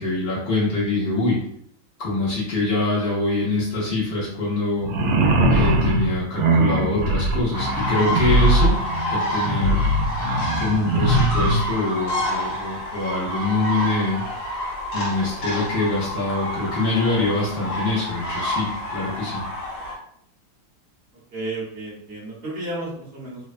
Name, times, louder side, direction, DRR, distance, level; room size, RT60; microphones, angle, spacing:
voice 1, 0.0-1.4 2.0-4.9 5.5-8.8 9.1-9.8 10.5-14.3 14.9-19.4, left 2 dB, 90° left, -6 dB, 0.5 m, -24 dB
sound 1, 4.8-11.6, right 1 dB, 75° right, 1.0 m, -20 dB
sound 2, 7.5-19.9, equal, 70° left, 1.5 m, -28 dB
voice 2, 21.3-23.5, right 2 dB, 40° right, -6 dB, 1.1 m, -32 dB
3.3 x 2.1 x 2.4 m, 0.66 s
omnidirectional pair, 2.2 m